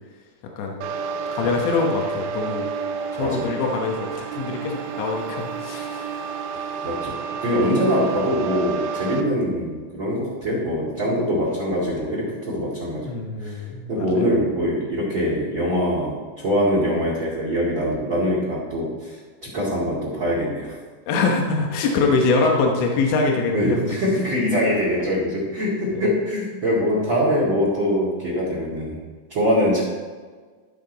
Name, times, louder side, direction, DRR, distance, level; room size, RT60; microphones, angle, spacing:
sound 1, 0.8-9.2, right 6 dB, 80° right, 2.6 m, -30 dB
voice 1, 1.4-2.7 3.1-6.3 13.1-14.1 21.1-23.9 25.9-26.0 27.0-27.1, left 3 dB, 80° left, 1 dB, 3.4 m, -24 dB
voice 2, 3.2-3.5 6.8-7.1 7.4-13.1 13.4-13.6 13.9-19.2 19.5-20.8 23.5-29.0 29.3-29.8, equal, 40° right, -7 dB, 2.0 m, -23 dB
14.5 x 5.8 x 4.0 m, 1.5 s
omnidirectional pair, 5.4 m